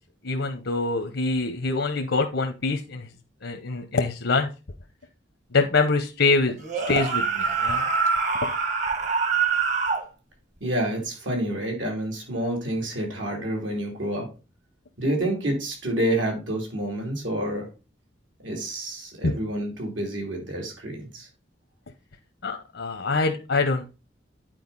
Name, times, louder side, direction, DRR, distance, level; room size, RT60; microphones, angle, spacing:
voice 1, 0.2-3.1 3.4-4.5 5.5-6.6 6.9-7.8 19.2-19.3 22.4-23.8, left 3 dB, 80° left, 6 dB, 0.8 m, -24 dB
sound 1, 6.6-10.0, right 5 dB, 40° right, 1.1 m, -24 dB
voice 2, 10.6-14.3 15.0-17.7 18.4-21.3, right 1 dB, 85° right, 1 dB, 3.0 m, -28 dB
9.2 x 4.8 x 4.0 m, 0.31 s
head